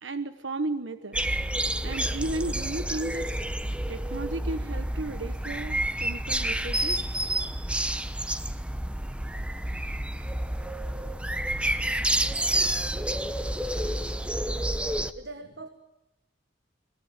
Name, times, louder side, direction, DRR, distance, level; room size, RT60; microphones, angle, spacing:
voice 1, 0.0-1.2 1.8-3.3 3.9-7.0, right 2 dB, 85° right, 10 dB, 1.2 m, -34 dB
sound 1, 1.1-15.1, right 1 dB, 5° right, 0.9 m, -29 dB
voice 2, 14.4-14.8 15.1-15.7, right 2 dB, 65° right, 8 dB, 1.5 m, -42 dB
25.5 x 19.0 x 8.8 m, 0.94 s
head